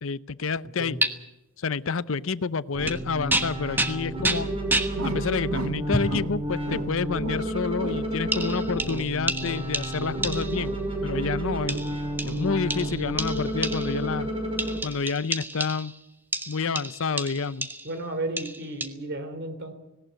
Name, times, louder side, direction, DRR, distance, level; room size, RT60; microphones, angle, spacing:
voice 1, 0.0-1.0 1.6-4.5 5.0-11.8 12.3-14.3 14.8-15.9 16.5-17.7, left 5 dB, 60° left, 17 dB, 0.6 m, -29 dB
voice 2, 0.8-1.1 17.8-19.7, right 2 dB, 50° right, 9 dB, 3.3 m, -33 dB
sound 1, 1.0-1.1 2.8-3.0 3.3-5.0 5.9-6.2 7.0-7.1 8.3-10.7 11.7-14.1 14.6-16.0 16.3-18.0 18.4-18.9, right 2 dB, 10° right, 1.2 m, -30 dB
sound 2, 2.7-14.8, right 1 dB, 25° right, 5.9 m, -31 dB
sound 3, 5.0-6.3 6.6-7.5 7.8-9.7 10.0-11.9 12.2-12.5 12.8-13.0, right 2 dB, 75° right, 1.9 m, -36 dB
18.5 x 18.0 x 9.0 m, 0.94 s
head